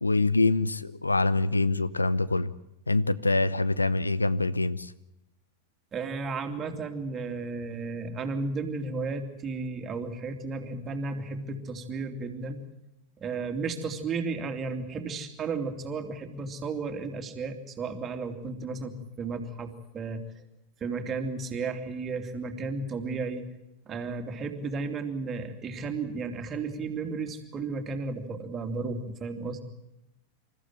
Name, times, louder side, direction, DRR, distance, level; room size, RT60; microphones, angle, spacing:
voice 1, 0.0-2.5 2.9-4.9, left 2 dB, 80° left, 17 dB, 0.8 m, -25 dB
voice 2, 5.9-12.6 13.2-20.2 20.8-23.5 23.9-29.6, right 4 dB, 25° right, 6 dB, 2.8 m, -33 dB
27.5 x 14.5 x 9.4 m, 0.88 s
figure-of-eight pair, 90°, 0 cm